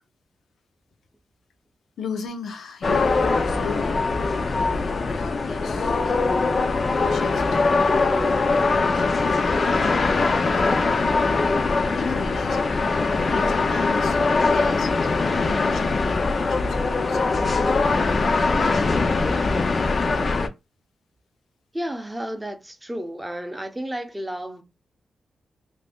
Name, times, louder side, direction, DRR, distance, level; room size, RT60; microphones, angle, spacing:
voice 1, 2.0-4.0 4.6-6.0 7.1-7.5 8.9-9.5 10.4-11.6 11.9-17.7, left 6 dB, 90° left, 0.6 m, -37 dB
sound 1, 2.8-20.5, left 3 dB, 40° left, 0.4 m, -22 dB
voice 2, 7.9-8.5 19.2-19.6 21.7-24.6, right 1 dB, 10° right, 0.5 m, -33 dB
2.6 x 2.5 x 3.4 m
wide cardioid pair, 150°, 0 cm